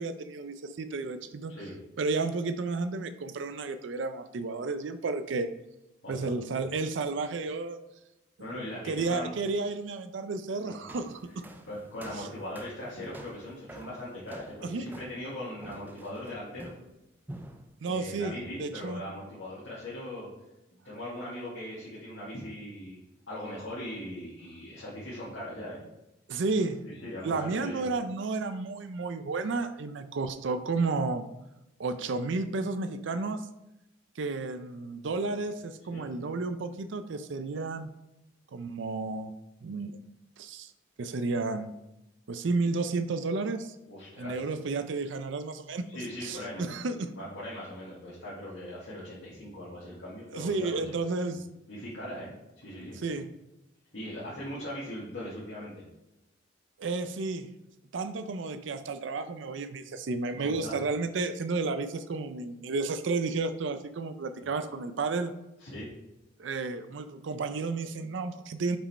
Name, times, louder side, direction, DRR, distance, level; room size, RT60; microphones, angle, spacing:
voice 1, 0.0-1.5 2.0-5.5 6.1-7.8 8.5-11.4 12.2-12.3 14.6-14.9 17.8-19.0 26.3-26.8 27.2-31.3 31.8-33.5 34.2-37.9 38.5-39.3 39.6-40.0 40.4-40.7 41.0-41.7 42.3-43.8 44.2-45.9 46.2-47.1 50.3-51.4 53.0-53.3 56.8-57.5 57.9-65.3 66.4-68.8, right 3 dB, 70° right, 10 dB, 0.4 m, -32 dB
voice 2, 6.0-6.3 8.4-9.3 10.6-10.8 11.7-16.7 17.8-20.3 20.8-23.0 23.3-25.8 26.8-27.9 35.9-36.1 43.9-44.4 45.9-46.7 47.1-50.9 51.7-52.3 52.6-53.0 53.9-55.8 60.4-60.8 64.4-64.5 65.6-65.9, left 1 dB, 75° left, -9 dB, 1.9 m, -40 dB
sound 1, 10.9-17.0 17.3-17.8, right 1 dB, 10° right, 0.3 m, -48 dB
5.4 x 5.1 x 4.2 m, 0.93 s
head